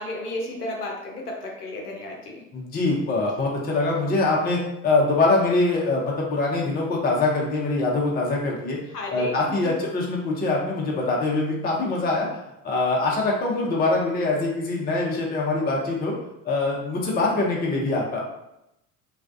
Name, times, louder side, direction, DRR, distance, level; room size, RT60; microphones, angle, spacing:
voice 1, 0.0-2.4 8.9-9.7, left 1 dB, 90° left, 0 dB, 0.6 m, -33 dB
voice 2, 2.5-8.8 9.1-12.3 12.6-16.1 16.4-18.2, left 2 dB, 20° left, -3 dB, 0.6 m, -23 dB
2.4 x 2.2 x 2.5 m, 0.85 s
figure-of-eight pair, 65°, 45 cm